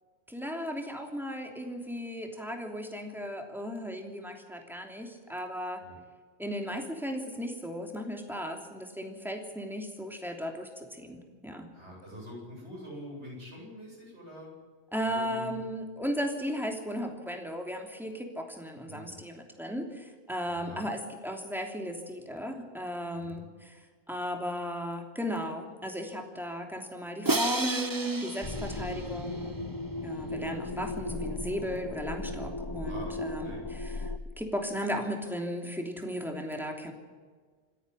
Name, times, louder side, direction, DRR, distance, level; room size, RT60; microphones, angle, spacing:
voice 1, 0.3-5.8 6.4-11.7 14.9-23.8 24.1-29.7 30.0-36.9, equal, ahead, 2 dB, 3.0 m, -36 dB
voice 2, 11.7-14.5 15.0-15.6 18.9-19.1 20.5-20.9 23.1-23.4 32.7-33.6, equal, 80° right, -3 dB, 8.5 m, -45 dB
Crash cymbal, 27.3-29.5, right 2 dB, 20° right, 0.9 m, -32 dB
sound 1, 28.4-34.2, left 2 dB, 25° left, 1.0 m, -36 dB
27.0 x 10.0 x 9.8 m, 1.5 s
omnidirectional pair, 1.1 m